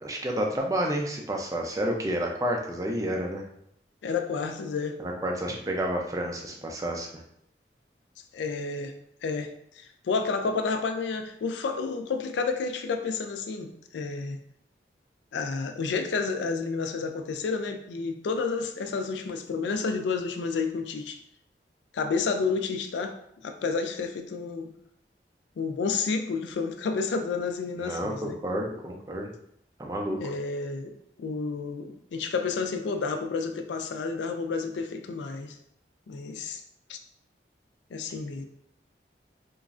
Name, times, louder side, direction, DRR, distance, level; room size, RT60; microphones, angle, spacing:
voice 1, 0.0-3.4 5.0-7.2 27.8-29.3 29.8-30.3, right 1 dB, 20° right, 1 dB, 0.4 m, -30 dB
voice 2, 4.0-5.0 8.3-8.9 9.2-14.4 15.3-21.2 21.9-23.2 23.4-24.7 25.6-28.4 30.2-30.9 31.2-35.5 36.1-36.6 36.9-37.0 37.9-38.4, left 4 dB, 90° left, 6 dB, 0.4 m, -30 dB
3.0 x 2.4 x 2.4 m, 0.73 s
head